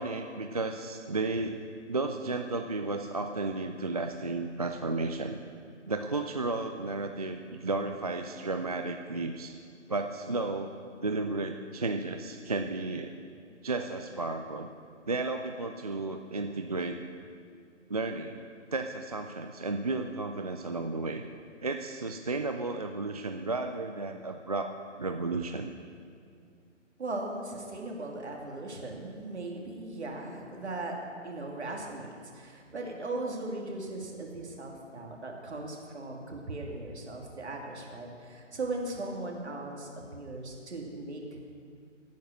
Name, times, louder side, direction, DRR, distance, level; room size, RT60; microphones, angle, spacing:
voice 1, 0.0-1.6 1.9-5.4 5.9-9.6 9.9-10.7 11.0-13.2 13.6-14.7 15.1-17.0 17.9-18.5 18.7-21.2 21.6-25.7, right 3 dB, 30° right, 5 dB, 0.4 m, -33 dB
voice 2, 27.0-41.4, right 2 dB, 60° right, 0 dB, 2.8 m, -38 dB
16.0 x 9.3 x 6.5 m, 2.3 s
figure-of-eight pair, 135°, 37 cm